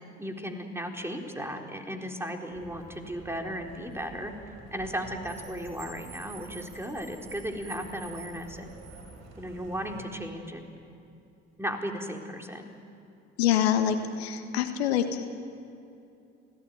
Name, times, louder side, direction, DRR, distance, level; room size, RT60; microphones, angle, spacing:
voice 1, 0.2-4.3 4.7-8.8 9.4-10.7 11.6-12.7, equal, 10° right, 2 dB, 3.9 m, -35 dB
Car, 2.5-10.0, right 4 dB, 55° right, 5.9 m, -47 dB
voice 2, 13.4-15.2, left 9 dB, 80° left, 8 dB, 1.4 m, -25 dB
27.5 x 18.0 x 9.3 m, 2.6 s
hypercardioid pair, 50°, 32 cm